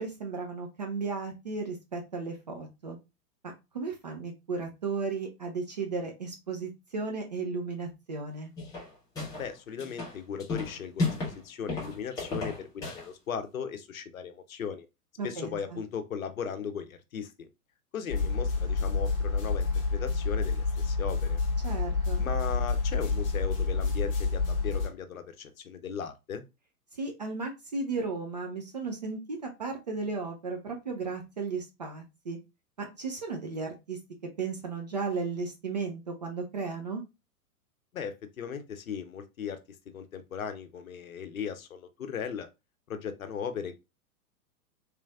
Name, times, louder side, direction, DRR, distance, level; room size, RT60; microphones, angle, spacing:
voice 1, 0.0-3.0 3.7-8.5 15.2-15.8 21.6-22.2 26.9-32.4 32.8-34.0 34.4-37.0, right 4 dB, 30° right, 0.4 m, -35 dB
sound 1, 8.6-9.5 9.8-11.4 11.7-13.1, left 3 dB, 10° left, 1.0 m, -33 dB
voice 2, 9.4-14.9 15.2-17.3 17.9-21.4 22.2-26.4 37.9-39.6 39.9-42.5 42.9-43.7, left 7 dB, 60° left, 0.7 m, -37 dB
sound 2, 18.1-24.9, left 4 dB, 30° left, 1.1 m, -28 dB
3.3 x 3.1 x 2.3 m
figure-of-eight pair, 105°, 46 cm